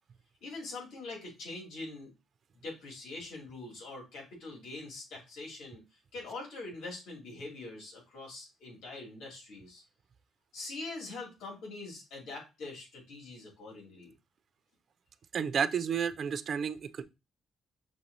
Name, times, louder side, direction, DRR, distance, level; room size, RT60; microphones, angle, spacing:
voice 1, 0.4-2.1 2.6-5.8 6.1-9.8 10.5-14.1, left 2 dB, 80° left, 2.3 m, -43 dB
voice 2, 15.3-17.0, right 7 dB, 55° right, 0.3 m, -31 dB
5.9 x 2.8 x 2.6 m
cardioid pair, 90°, 0 cm